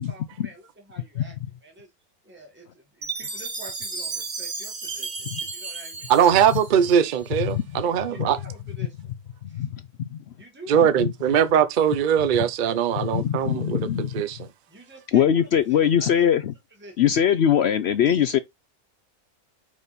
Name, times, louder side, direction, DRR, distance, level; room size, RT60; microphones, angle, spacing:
voice 1, 0.0-1.4 1.6-1.9 2.2-6.3 7.8-9.1 9.5-9.7 10.4-10.9 14.7-16.2 16.8-17.0, right 1 dB, 5° right, 2.2 m, -46 dB
Chime, 3.0-7.3, right 4 dB, 30° right, 1.4 m, -34 dB
voice 2, 6.1-8.4 10.7-14.5, right 9 dB, 50° right, 0.6 m, -21 dB
voice 3, 13.1-14.1 15.1-16.5 17.0-18.4, left 9 dB, 70° left, 0.6 m, -21 dB
4.8 x 4.0 x 5.2 m
omnidirectional pair, 1.6 m